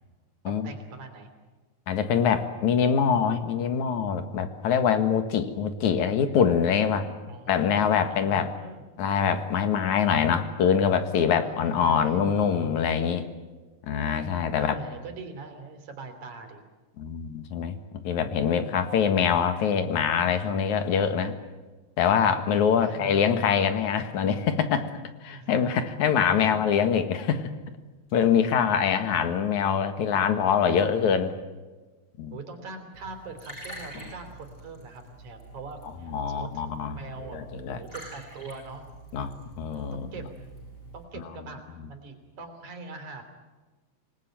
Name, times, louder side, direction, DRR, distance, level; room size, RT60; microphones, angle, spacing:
voice 1, 0.5-1.3 7.3-8.8 11.4-12.4 14.5-16.6 22.8-23.3 25.3-25.7 26.4-26.6 28.6-28.7 29.0-29.2 32.3-38.8 39.7-40.3 40.9-43.2, right 4 dB, 80° right, 6 dB, 4.6 m, -42 dB
voice 2, 1.9-7.1 7.5-8.5 9.0-13.3 13.9-14.8 17.0-17.8 18.0-21.4 22.0-24.9 25.2-27.5 28.1-31.4 32.2-32.4 36.1-37.0 37.3-37.8 39.1-40.1, left 7 dB, 80° left, 9 dB, 3.0 m, -24 dB
sound 1, 28.1-28.7 30.3-31.2 33.8-34.4, left 1 dB, 65° left, 6.7 m, -48 dB
Liquid, 32.9-41.0, right 1 dB, 15° left, 8.0 m, -46 dB
26.5 x 19.5 x 9.1 m, 1.3 s
omnidirectional pair, 3.3 m